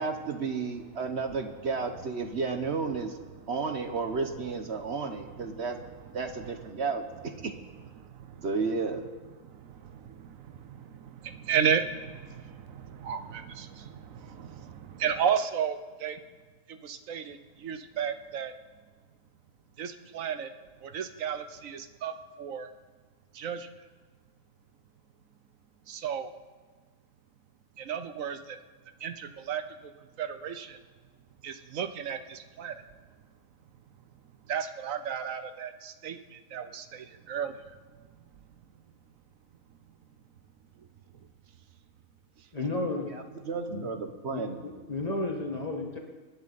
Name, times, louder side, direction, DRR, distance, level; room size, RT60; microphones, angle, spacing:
voice 1, 0.0-3.2 3.5-5.8 6.1-7.0 7.4-7.5 8.4-9.0 43.1-44.6, right 4 dB, 55° right, 6 dB, 1.3 m, -32 dB
voice 2, 8.0-8.5 9.5-16.2 16.7-18.5 19.8-20.5 20.8-22.7 23.3-23.7 25.9-26.3 27.8-28.6 29.0-29.6 30.2-30.8 31.4-32.7 34.5-37.6, right 7 dB, 85° right, 9 dB, 1.3 m, -33 dB
voice 3, 42.5-43.1 43.7-43.9 44.3-46.0, left 2 dB, 30° left, 1 dB, 1.9 m, -33 dB
25.5 x 11.0 x 4.1 m, 1.4 s
omnidirectional pair, 1.4 m